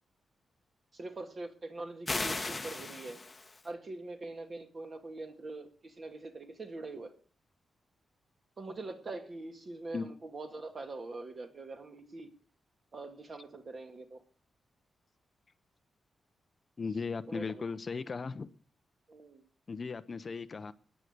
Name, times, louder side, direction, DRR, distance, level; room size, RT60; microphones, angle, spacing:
voice 1, 0.9-3.2 3.6-7.1 8.6-12.3 12.9-14.2 17.3-17.6 19.1-19.4, right 2 dB, 35° right, 2.0 m, -43 dB
sound 1, 2.1-3.7, left 3 dB, 20° left, 1.0 m, -36 dB
voice 2, 16.8-18.5 19.7-20.7, left 4 dB, 35° left, 0.7 m, -37 dB
14.5 x 9.9 x 6.7 m
wide cardioid pair, 150°, 0 cm